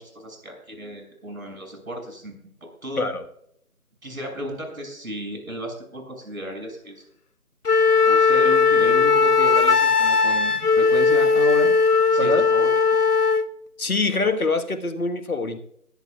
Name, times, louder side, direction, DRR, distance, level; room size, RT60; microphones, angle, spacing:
voice 1, 0.0-3.1 4.0-7.0 8.0-11.7 12.1-12.7, right 1 dB, 65° right, 2 dB, 6.7 m, -34 dB
Wind instrument woodwind instrument, 7.7-13.5, left 5 dB, 85° left, 1.1 m, -18 dB
voice 2, 12.2-12.5 13.8-15.6, left 3 dB, 70° left, 8 dB, 1.5 m, -24 dB
22.0 x 12.0 x 2.4 m, 0.72 s
figure-of-eight pair, 170°, 45 cm